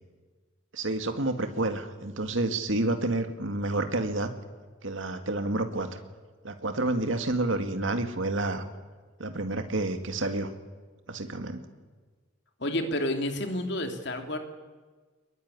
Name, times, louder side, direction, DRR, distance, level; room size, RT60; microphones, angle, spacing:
voice 1, 0.7-4.3 4.8-6.0 6.4-8.6 9.2-10.5 11.1-11.6, right 2 dB, 75° right, 7 dB, 2.2 m, -29 dB
voice 2, 12.6-14.4, left 1 dB, 60° left, 5 dB, 2.9 m, -30 dB
22.0 x 21.5 x 9.9 m, 1.4 s
head